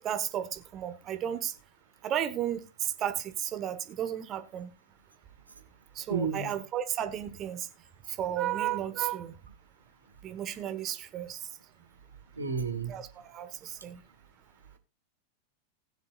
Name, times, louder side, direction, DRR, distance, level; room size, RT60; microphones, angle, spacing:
voice 1, 0.0-1.5 2.0-4.7 5.9-7.7 8.2-9.3 10.2-11.4 12.9-14.0, right 10 dB, 30° right, 1.4 m, -33 dB
voice 2, 6.1-6.5 12.4-13.0, right 5 dB, 80° right, 1.8 m, -31 dB
20.0 x 7.2 x 2.5 m
figure-of-eight pair, 90°, 0 cm